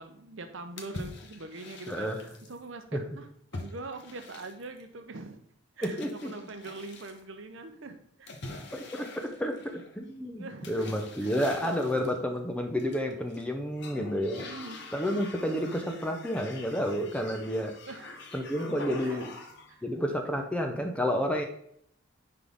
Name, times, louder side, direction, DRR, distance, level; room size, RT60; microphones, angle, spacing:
voice 1, 0.0-3.3 3.5-5.4 5.8-8.3 10.4-10.9 11.2-11.3 11.6-12.0 14.4-14.8 17.9-18.2 19.0-19.3, right 3 dB, 60° right, 0.7 m, -43 dB
sound 1, 0.8-2.6 3.5-4.8 5.8-7.2 8.3-10.0 10.6-12.2 12.8-13.4 13.7-19.7, left 2 dB, 55° left, 1.0 m, -45 dB
voice 2, 1.9-2.2 2.9-3.0 5.8-6.3 8.7-14.5 14.9-17.8 18.3-19.3 19.8-21.4, equal, 5° left, 0.6 m, -30 dB
9.8 x 3.8 x 3.5 m
head